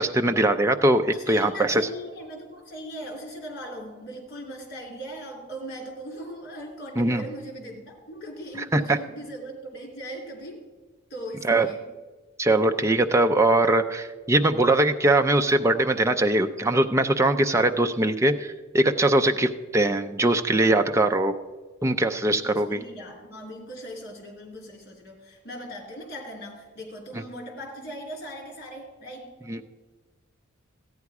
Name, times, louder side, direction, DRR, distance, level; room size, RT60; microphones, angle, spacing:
voice 1, 0.0-1.8 7.0-7.2 8.7-9.0 11.4-11.7 12.4-21.3 21.8-22.8 29.5-29.6, right 1 dB, 15° right, 6 dB, 0.4 m, -21 dB
voice 2, 1.1-10.6 11.1-11.8 22.4-29.4, equal, 50° left, 1 dB, 2.9 m, -39 dB
14.0 x 9.5 x 4.8 m, 1.3 s
head